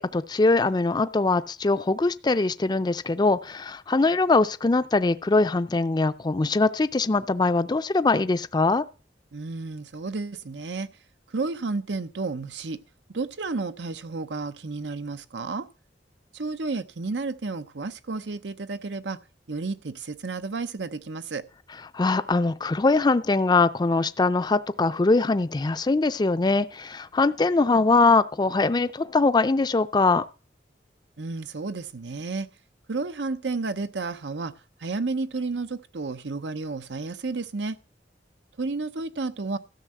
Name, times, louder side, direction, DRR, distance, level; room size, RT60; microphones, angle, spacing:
voice 1, 0.0-8.8 21.9-30.3, left 3 dB, 25° left, 0.4 m, -22 dB
voice 2, 9.3-10.9 11.3-12.8 13.1-15.7 16.3-19.2 19.5-21.4 31.2-32.5 32.9-34.5 34.8-37.8 38.6-39.6, right 3 dB, 85° right, 0.8 m, -31 dB
13.0 x 5.5 x 7.5 m
head